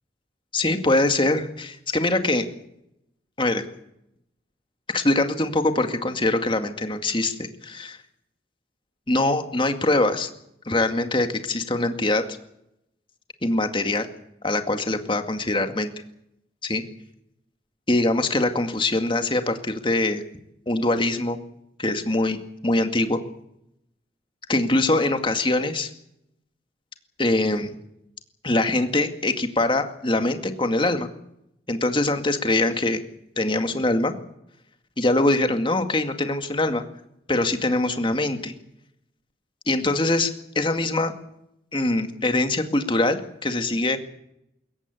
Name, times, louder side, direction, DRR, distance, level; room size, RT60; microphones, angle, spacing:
voice 1, 0.5-2.5 3.4-3.6 4.9-8.0 9.1-10.3 10.7-12.2 13.4-14.1 14.4-15.9 16.6-16.8 17.9-20.2 20.7-21.4 21.8-23.2 24.5-25.9 27.2-27.7 28.4-31.1 31.7-33.0 33.4-34.1 35.0-36.8 37.3-38.5 39.7-41.1 41.7-44.0, left 2 dB, 25° left, 7 dB, 2.1 m, -23 dB
22.5 x 17.5 x 8.5 m, 0.80 s
head